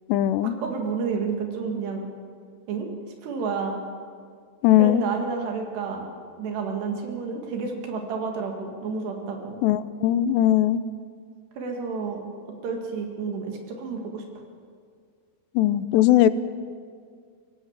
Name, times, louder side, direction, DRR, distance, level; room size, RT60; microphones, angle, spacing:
voice 1, 0.1-0.6 4.6-5.0 9.6-10.8 15.6-16.3, left 13 dB, 85° left, 15 dB, 2.8 m, -19 dB
voice 2, 0.6-2.1 2.7-2.9 3.2-3.8 4.8-6.1 6.4-9.6 11.6-12.2 12.6-14.2, right 5 dB, 75° right, 2 dB, 4.3 m, -30 dB
24.5 x 16.0 x 7.4 m, 2.1 s
omnidirectional pair, 4.9 m